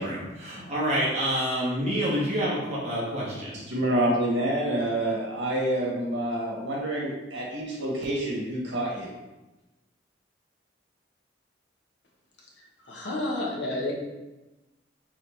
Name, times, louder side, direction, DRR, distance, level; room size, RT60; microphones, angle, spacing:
voice 1, 0.0-3.5, equal, 35° right, -6 dB, 1.2 m, -27 dB
voice 2, 3.5-9.1, right 1 dB, 80° right, -5 dB, 1.3 m, -27 dB
voice 3, 12.9-13.9, left 2 dB, 70° left, -2 dB, 1.0 m, -30 dB
4.2 x 3.6 x 3.2 m, 1.1 s
head